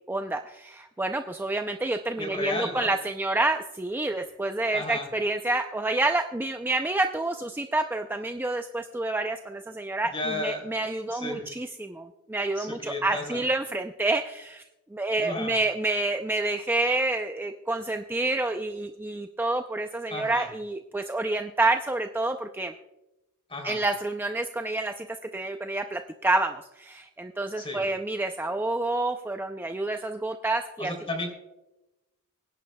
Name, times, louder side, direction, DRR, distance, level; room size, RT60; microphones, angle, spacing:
voice 1, 0.1-14.6 14.9-22.7 23.6-25.1 25.3-30.9, right 2 dB, 10° right, 5 dB, 0.4 m, -28 dB
voice 2, 2.2-2.9 4.1-4.2 4.7-5.1 10.1-10.6 11.1-11.5 12.6-13.4 15.2-15.6 20.1-20.5 23.5-23.8 27.6-27.8 30.8-31.3, left 2 dB, 25° left, 2 dB, 3.1 m, -33 dB
24.5 x 10.5 x 2.2 m, 0.96 s
head